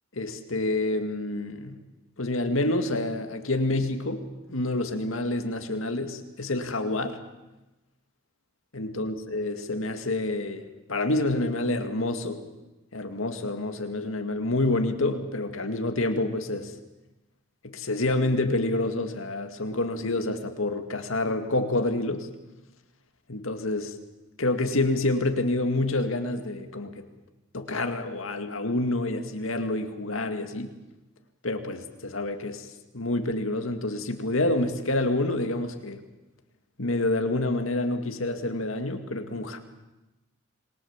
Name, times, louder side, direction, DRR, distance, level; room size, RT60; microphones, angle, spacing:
voice 1, 0.1-1.8 2.2-7.2 8.7-10.6 10.9-12.4 12.9-16.7 17.6-22.3 23.3-23.9 24.4-27.1 27.5-30.8 31.4-32.7 32.9-36.0 36.8-39.6, left 2 dB, 75° left, 6 dB, 2.2 m, -28 dB
27.5 x 22.0 x 7.3 m, 1.0 s
head